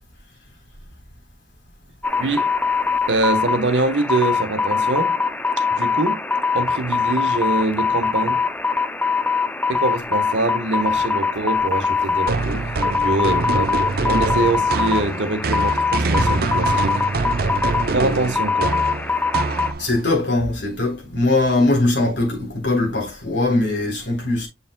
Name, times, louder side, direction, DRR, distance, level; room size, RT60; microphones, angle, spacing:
sound 1, 2.0-19.7, left 5 dB, 10° left, 0.4 m, -22 dB
voice 1, 3.1-5.1 5.7-6.2 6.5-8.4 9.7-13.8 14.0-17.0 17.9-18.7, right 2 dB, 75° right, 1.2 m, -24 dB
sound 2, 12.3-20.1, right 3 dB, 55° right, 0.5 m, -24 dB
voice 2, 19.8-24.5, left 2 dB, 75° left, 3.7 m, -20 dB
7.1 x 7.0 x 2.2 m
head